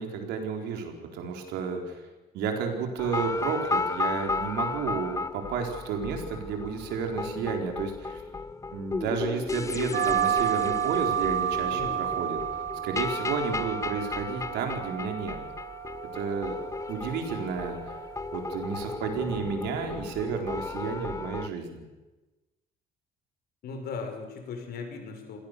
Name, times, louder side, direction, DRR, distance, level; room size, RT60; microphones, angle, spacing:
voice 1, 0.0-2.0 2.3-8.2 8.7-12.4 12.8-15.4 16.1-16.6 16.9-17.8 18.3-21.9, right 5 dB, 80° right, 3 dB, 4.2 m, -32 dB
sound 1, 3.0-21.5, left 4 dB, 20° left, 0.7 m, -34 dB
sound 2, 9.9-19.0, right 10 dB, 60° right, 1.0 m, -32 dB
voice 2, 11.7-12.0 23.6-25.4, left 4 dB, 65° left, 5 dB, 5.3 m, -37 dB
26.5 x 18.0 x 6.9 m, 1.2 s
cardioid pair, 110°, 17 cm